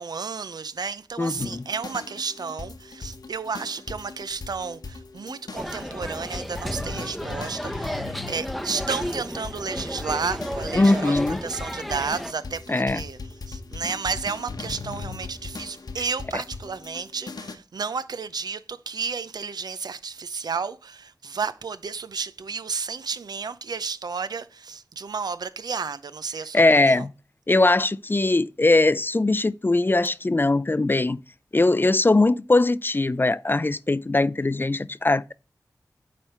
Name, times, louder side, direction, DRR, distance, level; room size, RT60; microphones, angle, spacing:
voice 1, 0.0-13.2 13.5-27.1, right 5 dB, 85° right, 0.6 m, -32 dB
voice 2, 1.2-1.6 10.8-11.4 12.7-13.0 26.5-27.1 27.5-31.2 31.5-35.3, left 2 dB, 30° left, 0.4 m, -21 dB
sound 1, 1.4-17.6, left 4 dB, 80° left, 1.0 m, -39 dB
sound 2, 5.5-12.3, equal, ahead, 0.7 m, -33 dB
9.0 x 3.4 x 5.6 m
cardioid pair, 40°, 7 cm